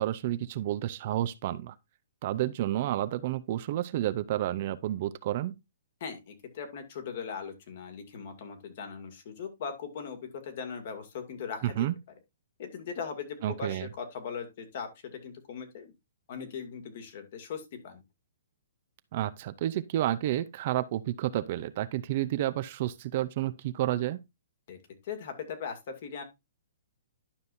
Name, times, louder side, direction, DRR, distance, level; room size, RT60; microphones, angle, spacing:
voice 1, 0.0-1.8 2.2-5.5 11.6-11.9 13.4-13.9 19.1-24.2, right 13 dB, 45° right, 0.6 m, -30 dB
voice 2, 6.0-11.9 12.6-15.9 16.3-18.0 24.7-26.2, left 6 dB, 55° left, 2.3 m, -39 dB
11.5 x 5.3 x 2.6 m
hypercardioid pair, 145°, 0 cm